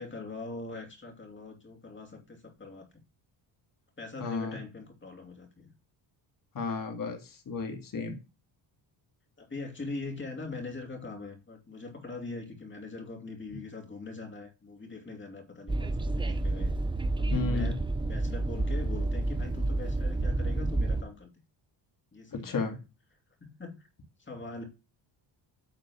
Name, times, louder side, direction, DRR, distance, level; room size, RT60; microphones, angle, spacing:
voice 1, 0.0-2.9 4.0-5.7 9.4-16.7 17.2-21.3 22.1-22.6 23.4-23.9 24.2-24.6, left 3 dB, 25° left, 2.6 m, -42 dB
voice 2, 4.2-4.6 6.5-8.2 17.3-17.7 22.3-22.7, left 4 dB, 45° left, 2.3 m, -33 dB
Train, 15.7-21.0, right 2 dB, 10° right, 0.6 m, -29 dB
9.1 x 3.9 x 6.0 m
cardioid pair, 110°, 46 cm